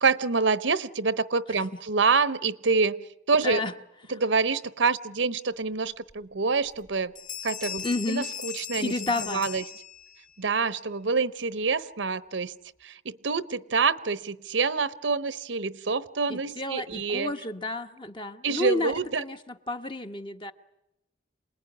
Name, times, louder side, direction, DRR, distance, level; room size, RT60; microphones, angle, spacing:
voice 1, 0.0-3.6 4.1-7.1 7.4-9.6 10.4-12.5 12.8-17.3 18.4-19.2, right 4 dB, 80° right, 16 dB, 0.9 m, -27 dB
voice 2, 3.4-3.7 7.8-8.3 8.8-9.5 16.3-20.5, left 2 dB, 25° left, 7 dB, 1.1 m, -31 dB
Bell, 6.1-6.2 6.6-6.9 7.1-10.3, left 9 dB, 40° left, 2.5 m, -38 dB
27.5 x 20.0 x 9.8 m, 0.87 s
head